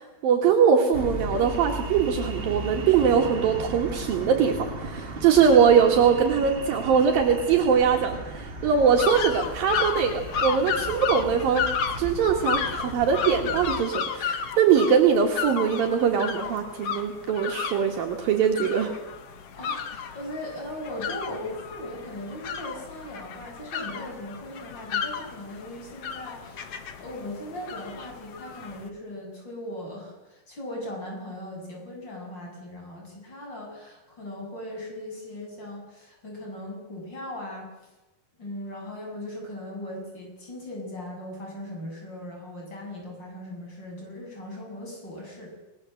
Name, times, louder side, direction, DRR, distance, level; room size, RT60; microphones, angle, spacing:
voice 1, 0.0-11.6 12.0-18.9, right 7 dB, 70° right, 2 dB, 3.4 m, -22 dB
sound 1, 0.9-13.8, right 1 dB, 35° right, 0.9 m, -36 dB
sound 2, 9.0-28.9, left 7 dB, 50° left, 2.1 m, -33 dB
voice 2, 19.5-26.7 27.0-37.7 38.4-45.5, left 1 dB, 25° left, 0 dB, 7.9 m, -38 dB
28.5 x 19.0 x 7.8 m, 1.1 s
omnidirectional pair, 4.4 m